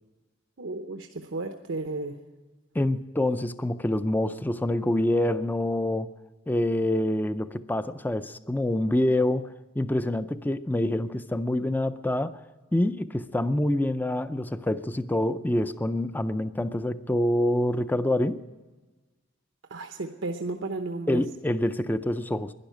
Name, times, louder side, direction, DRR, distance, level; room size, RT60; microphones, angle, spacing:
voice 1, 0.6-2.2 19.7-21.2, right 2 dB, 85° right, 0.8 m, -33 dB
voice 2, 2.7-6.1 6.5-12.4 12.7-18.4 21.1-22.5, left 1 dB, 10° left, 0.4 m, -26 dB
12.0 x 10.5 x 9.1 m
head